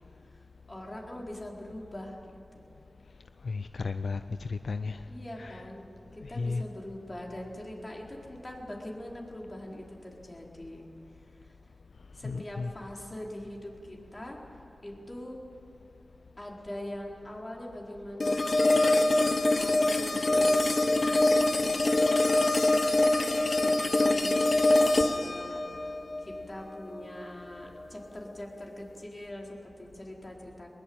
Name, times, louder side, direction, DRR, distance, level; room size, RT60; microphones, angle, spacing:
voice 1, 0.3-2.2 2.5-2.7 5.1-5.9 6.1-10.9 11.4-11.5 12.1-14.4 14.8-15.4 16.4-21.7 22.1-22.5 23.6-24.4 24.7-26.0 26.2-30.7, left 1 dB, 30° left, -1 dB, 4.6 m, -43 dB
voice 2, 3.4-5.1 5.4-5.7 6.2-6.6 12.2-12.7 24.1-25.0, left 4 dB, 80° left, 10 dB, 0.6 m, -35 dB
sound 1, 18.2-27.2, left 2 dB, 55° left, 1.4 m, -24 dB
21.5 x 21.0 x 8.9 m, 2.7 s
wide cardioid pair, 55°, 0 cm